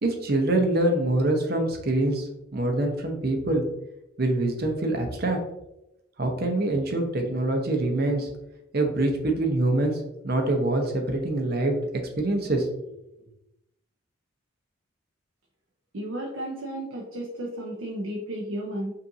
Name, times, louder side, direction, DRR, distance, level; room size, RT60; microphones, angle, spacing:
voice 1, 0.0-2.3 2.5-3.6 4.2-5.4 6.2-8.3 8.7-11.8 12.2-12.7, right 2 dB, 50° right, 3 dB, 0.7 m, -25 dB
voice 2, 15.9-18.9, right 1 dB, 85° right, -2 dB, 0.7 m, -33 dB
5.4 x 2.5 x 2.7 m, 0.88 s
head